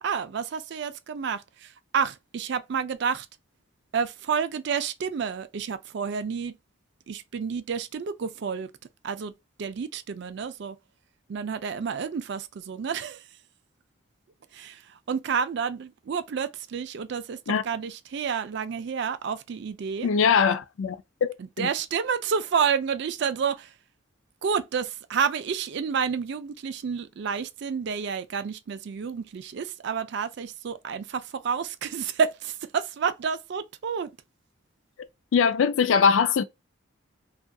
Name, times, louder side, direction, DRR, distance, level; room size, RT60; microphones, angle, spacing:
voice 1, 0.0-3.3 3.9-6.6 7.1-8.7 9.0-9.3 9.6-10.8 11.3-13.3 14.5-20.1 21.4-23.7 24.4-34.1, right 6 dB, 55° right, 0.3 m, -30 dB
voice 2, 20.0-21.0 21.2-21.7 35.3-36.4, left 6 dB, 75° left, 0.4 m, -22 dB
2.6 x 2.4 x 2.2 m
head